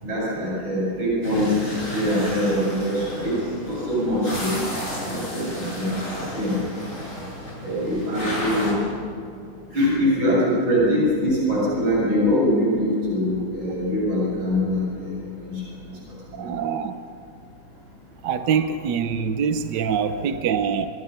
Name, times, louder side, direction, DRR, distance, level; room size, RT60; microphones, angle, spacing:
voice 1, 0.0-1.5 1.9-3.3 3.6-4.5 5.0-6.6 7.6-8.8 9.7-15.1 15.4-15.6 16.4-16.5, equal, 90° right, -5 dB, 8.5 m, -23 dB
sound 1, 1.2-8.7, equal, 40° left, 7.9 m, -33 dB
voice 2, 5.6-5.9 16.3-17.0 18.2-20.9, right 7 dB, 65° right, 8 dB, 1.5 m, -25 dB
28.5 x 25.0 x 5.8 m, 2.3 s
omnidirectional pair, 2.1 m